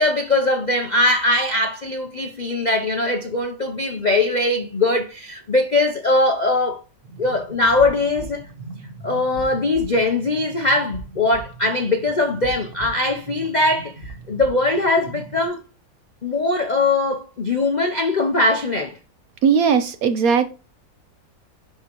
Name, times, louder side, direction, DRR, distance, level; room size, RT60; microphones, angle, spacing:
voice 1, 0.0-6.8 7.2-8.5 9.0-15.6 16.2-19.0, left 2 dB, 65° left, 0.4 m, -21 dB
sound 1, 7.0-15.5, right 3 dB, 35° right, 1.4 m, -39 dB
voice 2, 19.4-20.5, right 6 dB, 65° right, 0.9 m, -18 dB
11.0 x 3.8 x 3.0 m
omnidirectional pair, 1.9 m